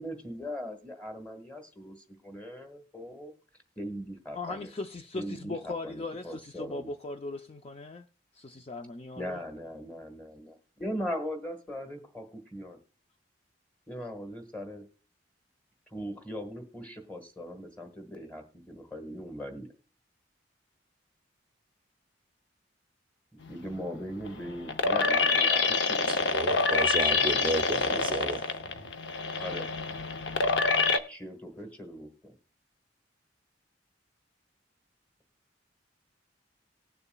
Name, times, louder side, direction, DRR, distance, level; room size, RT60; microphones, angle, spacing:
voice 1, 0.0-2.0 2.2-3.3 3.8-4.7 5.1-6.9 9.2-12.8 13.9-14.8 15.9-19.7 23.5-26.3 27.9-28.0 29.4-29.7 31.1-32.4, equal, 10° left, 1.5 m, -39 dB
voice 2, 4.3-8.0 8.3-9.4, left 3 dB, 30° left, 0.4 m, -38 dB
sound 1, 23.5-31.0, left 4 dB, 80° left, 0.8 m, -27 dB
voice 3, 26.1-28.9, right 2 dB, 25° right, 0.5 m, -33 dB
19.5 x 6.9 x 2.3 m
head